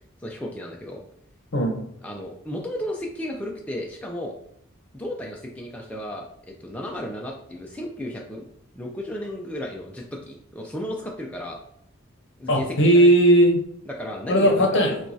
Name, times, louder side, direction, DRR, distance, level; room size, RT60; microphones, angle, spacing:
voice 1, 0.2-1.0 2.0-4.3 4.9-8.4 8.8-11.6 12.4-13.1 13.9-14.7, equal, 5° left, -1 dB, 0.3 m, -34 dB
voice 2, 1.5-1.8 12.5-13.6 14.3-15.0, right 1 dB, 55° left, 3 dB, 0.8 m, -17 dB
5.9 x 2.3 x 2.6 m, 0.68 s
head